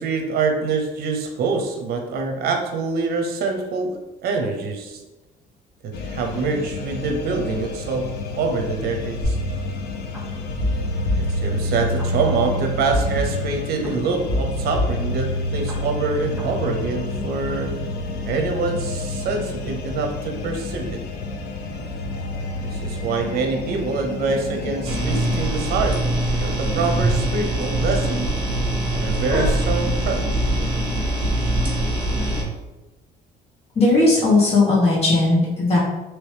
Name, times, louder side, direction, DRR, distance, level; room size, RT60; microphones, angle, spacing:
voice 1, 0.0-5.0 5.8-8.1 8.4-9.4 11.1-17.8 18.2-21.0 22.6-28.3 28.9-30.3 32.4-32.5, right 4 dB, 65° right, 4 dB, 0.7 m, -25 dB
sound 1, 5.9-25.5, left 2 dB, 70° left, 0.5 m, -29 dB
sound 2, 9.2-10.2 10.6-12.0 12.9-13.9 14.3-15.7 16.1-16.5, left 1 dB, 5° right, 0.9 m, -27 dB
sound 3, 24.8-32.4, right 1 dB, 30° right, 1.1 m, -22 dB
voice 2, 33.7-35.8, left 2 dB, 40° left, -5 dB, 1.5 m, -17 dB
3.0 x 3.0 x 3.3 m, 1.1 s
cardioid pair, 110°, 17 cm